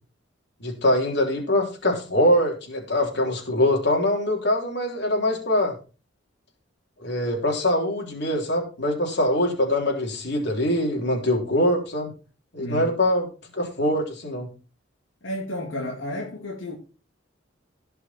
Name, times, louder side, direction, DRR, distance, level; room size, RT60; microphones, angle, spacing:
voice 1, 0.6-5.7 7.0-12.1 12.5-13.3 13.5-14.5, left 1 dB, 60° left, 3.7 m, -23 dB
voice 2, 12.6-12.9 15.2-16.7, equal, 85° left, 2.5 m, -32 dB
17.0 x 5.9 x 4.5 m
head